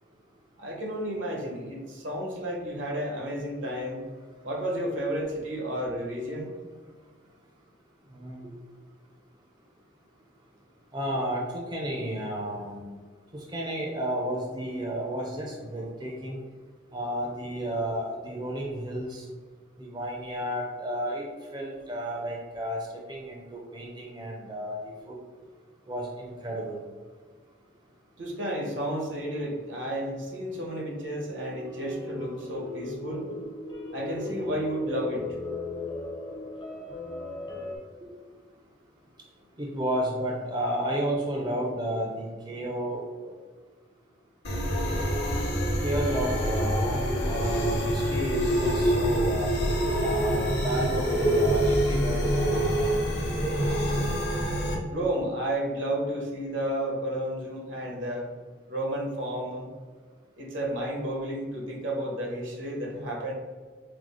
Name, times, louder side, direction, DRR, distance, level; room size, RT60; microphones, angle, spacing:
voice 1, 0.6-4.0 4.4-6.5 28.2-33.2 33.9-35.3 38.0-38.1 54.9-58.3 58.7-59.7 60.4-63.3, right 1 dB, 80° right, -1 dB, 1.0 m, -32 dB
voice 2, 8.1-8.5 10.9-12.8 13.3-16.4 16.9-19.3 19.8-21.2 21.5-25.2 25.9-26.8 39.6-43.3 45.8-49.5 50.0-53.1, equal, 20° right, -1 dB, 0.5 m, -32 dB
sound 1, 31.1-37.8, left 2 dB, 25° left, 0.6 m, -37 dB
sound 2, 44.4-54.7, equal, 60° left, 1.0 m, -26 dB
4.8 x 2.0 x 3.7 m, 1.5 s
head